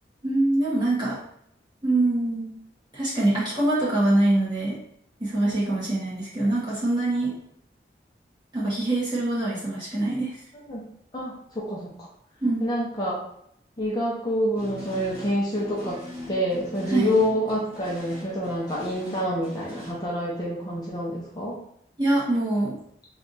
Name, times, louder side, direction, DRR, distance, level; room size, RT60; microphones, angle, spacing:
voice 1, 0.2-1.2 1.8-2.6 2.9-4.8 5.2-7.3 8.5-10.4 12.4-12.6 16.9-17.1 22.0-22.8, right 2 dB, 25° right, -8 dB, 1.4 m, -24 dB
voice 2, 5.4-5.8 10.5-10.8 11.1-11.9 12.6-13.2 13.8-16.0 16.3-21.6, equal, 20° left, -6 dB, 0.8 m, -27 dB
sound 1, 14.6-19.9, left 1 dB, 10° right, 1.1 m, -41 dB
3.4 x 2.5 x 4.0 m, 0.69 s
head